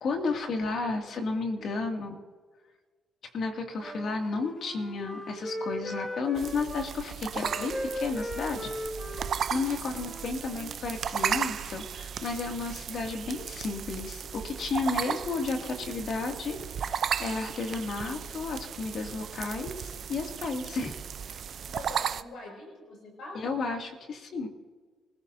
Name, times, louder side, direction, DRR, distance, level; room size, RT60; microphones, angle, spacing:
voice 1, 0.0-2.2 3.3-8.7 9.1-9.2 9.5-20.9 21.2-21.4 23.3-24.5, left 3 dB, 60° left, 3 dB, 2.3 m, -33 dB
Wind instrument woodwind instrument, 3.8-6.9 7.3-10.8, equal, 15° left, 1.9 m, -38 dB
Superb Lyrebird, 6.4-22.2, right 8 dB, 60° right, 0.6 m, -35 dB
voice 2, 21.7-23.6, left 2 dB, 75° left, -1 dB, 6.0 m, -44 dB
26.0 x 15.5 x 2.7 m, 1.5 s
cardioid pair, 90°, 0 cm